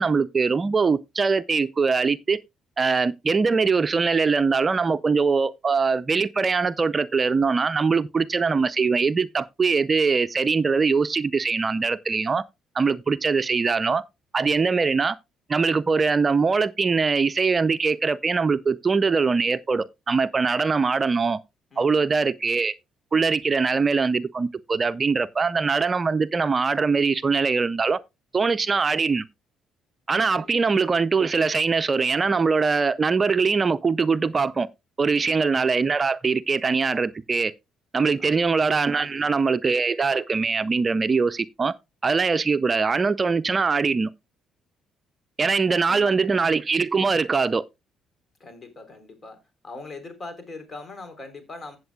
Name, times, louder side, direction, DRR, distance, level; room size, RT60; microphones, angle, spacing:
voice 1, 0.0-2.4 2.8-12.4 12.7-14.0 14.3-15.2 15.5-21.4 21.8-22.7 23.1-28.0 28.3-29.2 30.1-34.7 35.0-37.5 37.9-41.7 42.0-44.1 45.4-47.6, right 4 dB, 35° right, 0.5 m, -22 dB
voice 2, 21.7-22.3 30.3-30.5 35.1-35.5 38.1-38.5 38.9-39.5 45.9-46.2 48.4-49.4 49.6-51.8, left 3 dB, 40° left, 3.6 m, -42 dB
15.5 x 7.9 x 2.3 m
hypercardioid pair, 55°, 0 cm